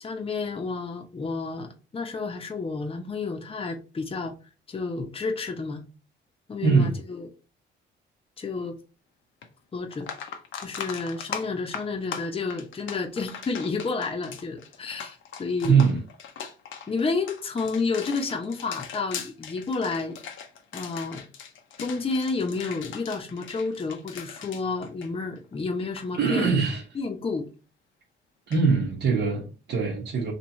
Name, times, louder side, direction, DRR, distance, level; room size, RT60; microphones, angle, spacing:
voice 1, 0.0-4.3 4.7-5.8 6.5-7.3 8.4-8.8 9.7-10.1 10.6-15.8 16.9-20.2 20.7-21.2 21.8-26.5 27.0-27.5, left 4 dB, 30° left, 0.8 m, -30 dB
voice 2, 6.6-6.9 15.6-16.0 26.2-26.8 28.5-30.3, right 5 dB, 60° right, 1.1 m, -22 dB
sound 1, 9.4-9.5 9.9-25.5 25.8-26.1 28.5-28.6, left 7 dB, 75° left, 0.7 m, -40 dB
3.1 x 2.9 x 4.1 m
cardioid pair, 90°, 20 cm